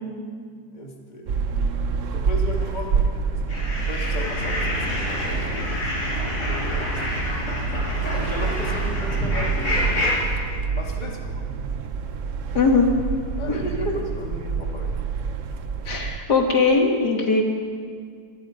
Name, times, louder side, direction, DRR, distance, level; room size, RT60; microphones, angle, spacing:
voice 1, 0.7-1.5 2.1-3.4 3.9-5.8 6.5-7.1 8.2-10.2 10.7-11.4 12.7-12.8 13.4-15.0, left 1 dB, 25° left, 0 dB, 2.4 m, -36 dB
sound 1, 1.3-16.2, right 5 dB, 55° right, 1.2 m, -27 dB
sound 2, 3.5-10.1, left 1 dB, 45° left, 6.0 m, -28 dB
voice 2, 12.5-12.9 15.9-17.4, left 4 dB, 75° left, 2 dB, 2.7 m, -19 dB
26.5 x 20.0 x 5.1 m, 2.1 s
omnidirectional pair, 1.8 m